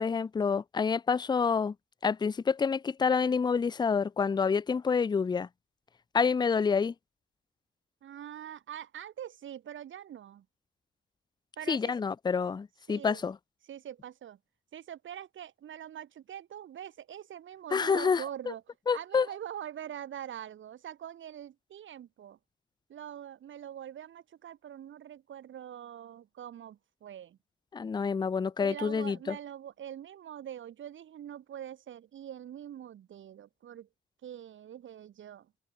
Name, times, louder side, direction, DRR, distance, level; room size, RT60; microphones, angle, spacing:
voice 1, 0.0-1.7 2.0-5.5 6.1-6.9 11.7-13.3 17.7-18.2 18.9-19.3 27.7-29.4, left 5 dB, 20° left, 0.4 m, -28 dB
voice 2, 8.0-10.5 11.6-11.9 12.9-13.2 13.7-14.4 14.7-18.6 18.9-22.4 22.9-27.4 28.6-33.9 34.2-35.5, right 10 dB, 70° right, 1.1 m, -44 dB
cardioid pair, 80°, 21 cm